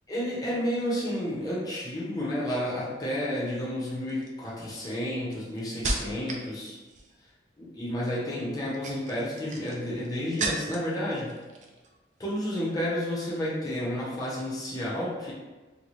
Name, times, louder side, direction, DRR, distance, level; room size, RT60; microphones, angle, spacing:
voice 1, 0.1-6.8 7.6-11.4 12.2-15.3, equal, 20° left, -6 dB, 0.7 m, -31 dB
sound 1, 3.0-3.4 4.1-6.5 6.8-7.3 8.5-11.0 11.3-11.9 12.2-12.5, right 2 dB, 40° right, 0.4 m, -35 dB
4.0 x 2.2 x 3.0 m, 1.2 s
head